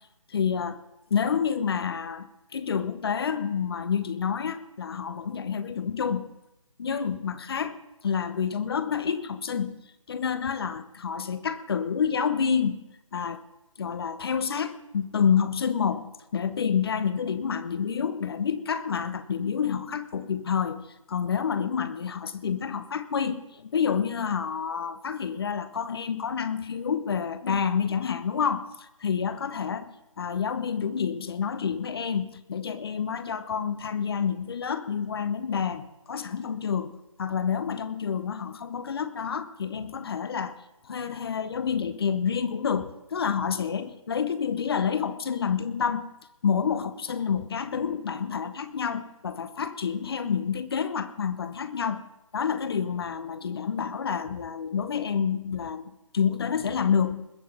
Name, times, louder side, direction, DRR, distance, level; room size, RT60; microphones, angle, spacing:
voice 1, 0.3-0.8 1.1-6.3 6.8-9.8 10.1-12.8 13.1-13.4 13.8-40.6 40.8-46.1 46.4-52.1 52.3-57.3, left 7 dB, 45° left, 12 dB, 1.0 m, -28 dB
21.0 x 7.5 x 5.9 m, 0.89 s
figure-of-eight pair, 150°, 17 cm